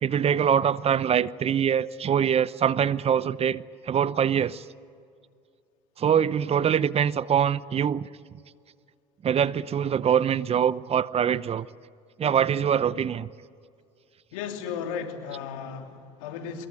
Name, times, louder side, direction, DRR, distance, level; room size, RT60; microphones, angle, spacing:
voice 1, 0.0-4.6 6.0-8.1 9.2-11.7 12.2-13.3, right 8 dB, 40° right, 0.8 m, -24 dB
voice 2, 14.3-16.7, left 7 dB, 85° left, 3.3 m, -35 dB
24.0 x 22.5 x 9.7 m
supercardioid pair, 85°, 16 cm